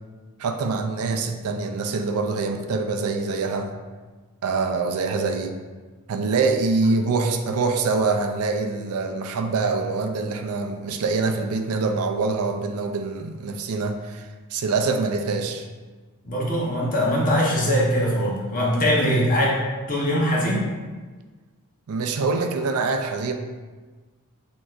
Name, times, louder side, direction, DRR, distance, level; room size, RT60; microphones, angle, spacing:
voice 1, 0.4-3.7 4.4-5.6 6.1-15.7 21.9-23.3, right 4 dB, 70° right, 5 dB, 0.4 m, -25 dB
voice 2, 16.2-19.6 19.9-20.7, equal, 40° left, -4 dB, 1.0 m, -21 dB
6.3 x 2.9 x 2.5 m, 1.3 s
head